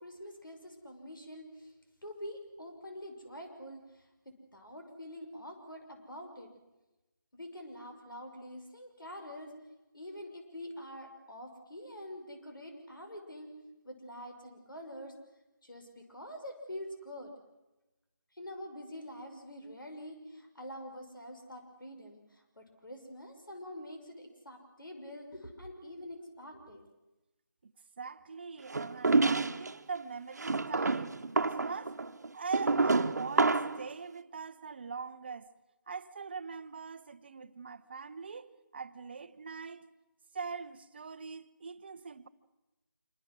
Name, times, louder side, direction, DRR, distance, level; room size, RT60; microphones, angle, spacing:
voice 1, 0.0-1.7 2.0-3.8 4.5-6.5 7.3-9.5 9.9-13.5 13.8-15.2 15.6-17.3 18.4-26.8, equal, 85° left, 5.9 m, -46 dB
voice 2, 28.0-31.9 32.3-33.5 33.8-35.5 35.9-39.9 40.3-42.3, right 5 dB, 30° right, 0.9 m, -42 dB
sound 1, 28.7-29.7 30.4-33.8, right 3 dB, 55° right, 1.3 m, -28 dB
27.0 x 24.0 x 6.3 m
figure-of-eight pair, 165°, 11 cm